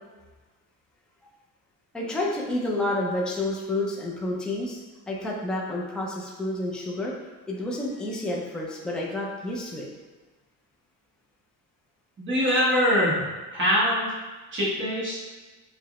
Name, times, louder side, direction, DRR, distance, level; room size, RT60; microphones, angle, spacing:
voice 1, 1.9-4.8 5.1-7.1 7.5-9.8, left 1 dB, 5° left, -3 dB, 0.4 m, -29 dB
voice 2, 12.2-13.2 13.5-14.1 14.5-15.2, equal, 35° right, -7 dB, 1.1 m, -23 dB
4.7 x 2.0 x 3.0 m, 1.3 s
cardioid pair, 155°, 35 cm